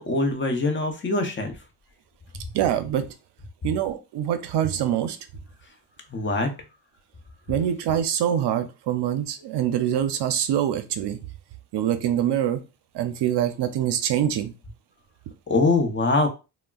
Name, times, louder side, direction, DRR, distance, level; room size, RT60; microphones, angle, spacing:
voice 1, 0.0-1.5 6.1-6.5 15.5-16.3, left 3 dB, 30° left, 5 dB, 0.7 m, -23 dB
voice 2, 2.5-3.1 3.6-5.2 7.5-11.2 11.7-12.6 12.9-14.5, right 10 dB, 75° right, 10 dB, 0.5 m, -24 dB
3.5 x 2.1 x 2.3 m, 0.29 s
cardioid pair, 95°, 41 cm